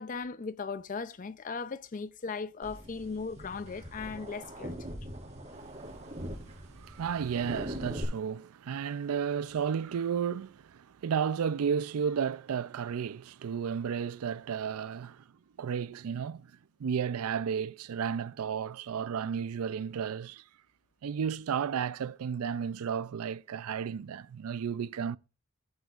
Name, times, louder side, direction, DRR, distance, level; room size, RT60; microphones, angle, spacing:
voice 1, 0.0-4.7, left 4 dB, 35° left, 0.4 m, -37 dB
sound 1, 2.6-8.0, equal, 30° right, 3.9 m, -42 dB
voice 2, 5.5-15.2 15.6-16.5 16.8-20.4 21.0-25.2, right 7 dB, 80° right, 0.4 m, -33 dB
16.0 x 7.9 x 2.4 m
head